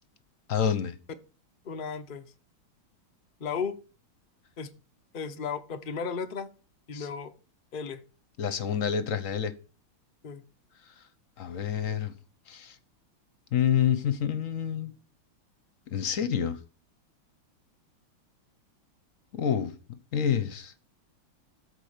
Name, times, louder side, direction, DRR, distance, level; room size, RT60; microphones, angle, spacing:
voice 1, 0.5-1.0 6.9-7.1 8.4-9.5 11.4-12.1 12.5-12.8 13.5-14.9 15.9-16.6 19.3-19.7 20.1-20.8, left 8 dB, 55° left, 1.0 m, -28 dB
voice 2, 1.6-2.3 3.4-3.8 4.6-4.7 5.1-6.5 6.9-7.3 7.7-8.0 10.2-10.4, left 6 dB, 90° left, 0.4 m, -34 dB
13.0 x 4.6 x 6.6 m
omnidirectional pair, 2.3 m